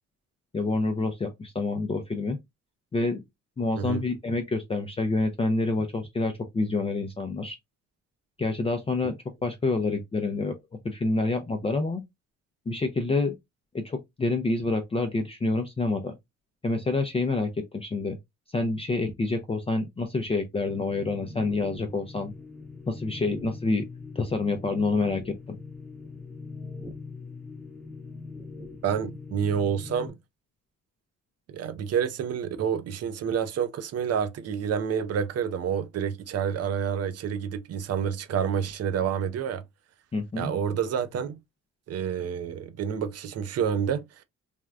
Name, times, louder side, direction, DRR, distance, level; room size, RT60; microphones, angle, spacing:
voice 1, 0.5-2.4 2.9-3.2 3.6-7.6 8.4-9.2 9.4-10.5 10.8-12.0 12.7-13.3 13.7-16.1 16.6-18.2 18.5-22.3 22.9-23.9 24.2-25.6 40.1-40.5, left 3 dB, 20° left, 0.4 m, -27 dB
sound 1, 20.7-30.1, left 3 dB, ahead, 0.9 m, -42 dB
voice 2, 28.8-30.2 31.5-39.6 40.4-41.4 41.9-44.0, right 7 dB, 55° right, 0.5 m, -28 dB
3.4 x 2.2 x 2.4 m
cardioid pair, 90°, 30 cm